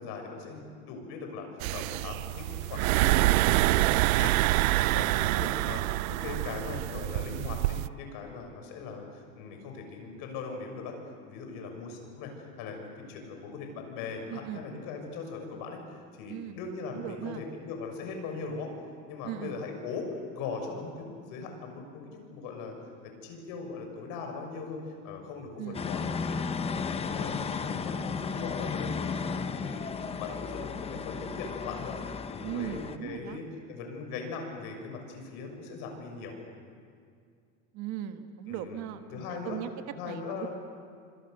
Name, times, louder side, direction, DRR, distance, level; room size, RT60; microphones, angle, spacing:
voice 1, 0.0-4.3 4.9-9.0 9.4-11.0 11.3-12.3 12.6-15.8 16.1-18.7 19.1-22.7 23.0-26.4 26.8-29.2 29.5-32.0 32.3-36.3 38.5-38.9 39.1-39.6 40.0-40.5, left 4 dB, 55° left, 3 dB, 6.5 m, -40 dB
sound 1, 1.6-7.9, right 18 dB, 80° right, 0.6 m, -26 dB
voice 2, 14.3-14.7 16.3-16.6 16.9-17.4 19.2-19.6 25.6-25.8 32.4-33.4 37.7-39.7 40.0-40.5, right 11 dB, 45° right, 7 dB, 1.5 m, -39 dB
sound 2, 25.7-33.0, left 5 dB, 15° left, 0.8 m, -34 dB
27.0 x 26.0 x 6.8 m, 2.2 s
supercardioid pair, 150°, 41 cm